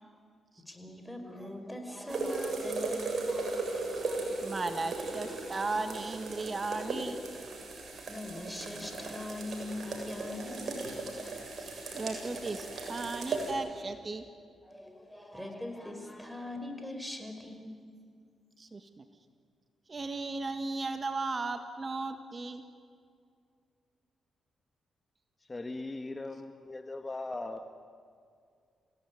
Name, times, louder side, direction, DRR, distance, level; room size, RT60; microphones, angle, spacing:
voice 1, 0.7-5.3 8.1-10.9 14.6-17.8, left 1 dB, 5° left, 5 dB, 5.2 m, -42 dB
sound 1, 2.1-13.5, right 3 dB, 60° right, 7.5 m, -37 dB
voice 2, 4.4-7.2 11.6-11.7 11.9-14.2 18.6-19.0 19.9-22.6, right 3 dB, 40° right, 8 dB, 1.7 m, -36 dB
voice 3, 25.4-27.7, left 2 dB, 30° left, 7 dB, 1.7 m, -39 dB
27.0 x 17.5 x 9.6 m, 2.2 s
supercardioid pair, 55°, 0 cm